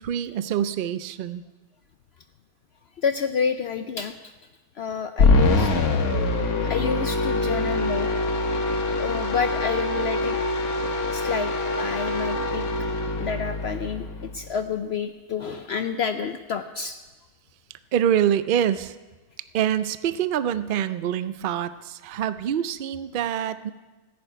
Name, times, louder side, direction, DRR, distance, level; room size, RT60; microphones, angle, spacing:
voice 1, 0.0-1.4 17.9-18.9 19.5-23.7, right 10 dB, 85° right, 13 dB, 0.4 m, -25 dB
voice 2, 3.0-4.3 4.8-5.7 6.6-8.1 9.0-10.4 11.1-12.6 13.2-17.0, left 6 dB, 60° left, 9 dB, 0.7 m, -29 dB
sound 1, 5.2-14.6, left 2 dB, 80° left, 1.7 m, -24 dB
14.5 x 7.0 x 9.0 m, 1.2 s
omnidirectional pair, 1.5 m